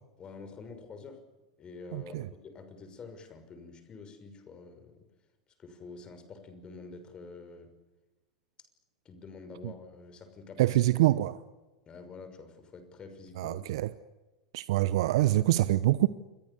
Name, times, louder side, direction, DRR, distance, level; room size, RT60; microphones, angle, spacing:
voice 1, 0.2-1.2 1.6-5.0 5.6-7.7 9.0-10.8 11.9-13.6, left 4 dB, 30° left, 9 dB, 6.0 m, -47 dB
voice 2, 1.9-2.3 9.6-9.7 10.6-11.4 13.4-13.9 14.5-16.1, right 15 dB, 60° right, 16 dB, 0.9 m, -25 dB
29.0 x 22.5 x 7.1 m, 1.1 s
hypercardioid pair, 90°, 3 cm